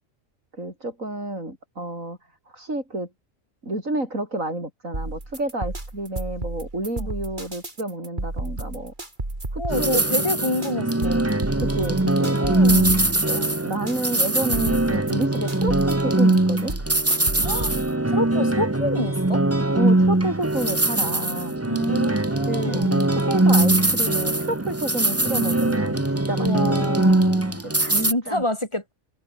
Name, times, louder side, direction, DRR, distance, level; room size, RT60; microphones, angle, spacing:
voice 1, 0.6-2.2 2.5-3.1 3.6-8.9 9.5-10.0 11.6-12.4 13.3-16.7 19.7-21.6 22.5-26.9 27.6-28.4, right 1 dB, 85° right, 8.7 m, -30 dB
sound 1, 4.9-17.9, right 2 dB, 35° right, 4.2 m, -32 dB
voice 2, 9.6-11.2 12.4-13.0 17.4-17.7 18.1-19.4 21.7-23.2 26.4-27.7 28.0-28.9, left 1 dB, 20° left, 5.0 m, -28 dB
sound 2, 9.7-28.1, right 2 dB, 10° right, 1.1 m, -21 dB
omnidirectional pair, 1.3 m